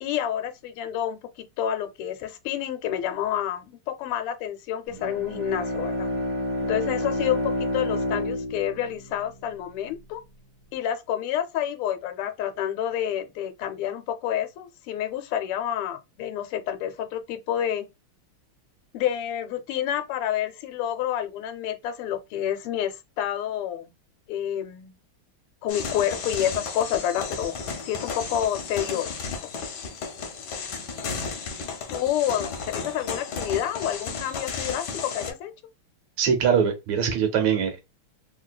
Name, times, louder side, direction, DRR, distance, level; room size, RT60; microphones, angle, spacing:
voice 1, 0.0-6.1 6.6-10.2 10.7-17.9 18.9-23.9 24.3-24.9 25.6-27.6 27.8-29.2 31.9-35.5, left 10 dB, 85° left, 1.5 m, -29 dB
Bowed string instrument, 4.9-9.7, left 1 dB, 45° right, 0.5 m, -29 dB
sound 1, 25.7-35.3, left 5 dB, 65° left, 1.1 m, -34 dB
voice 2, 36.2-37.8, right 7 dB, 75° right, 1.8 m, -22 dB
3.6 x 2.7 x 2.3 m
omnidirectional pair, 2.4 m